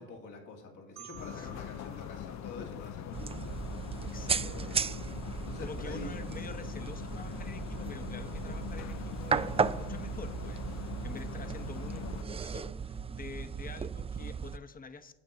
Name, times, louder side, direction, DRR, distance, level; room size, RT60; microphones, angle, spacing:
voice 1, 0.0-3.6 4.3-5.0 5.4-6.3, left 3 dB, 80° left, 1 dB, 2.5 m, -46 dB
Marimba xylophone, 1.0-3.8, right 10 dB, 60° right, 2.2 m, -54 dB
sound 1, 1.1-12.2, left 10 dB, 65° left, 0.6 m, -42 dB
voice 2, 1.3-1.6 4.0-4.8 5.6-15.1, left 4 dB, 30° left, 9 dB, 0.9 m, -47 dB
sound 2, 3.1-14.6, right 6 dB, 20° right, 0.3 m, -36 dB
8.2 x 7.2 x 6.4 m, 1.0 s
cardioid pair, 90°, 30 cm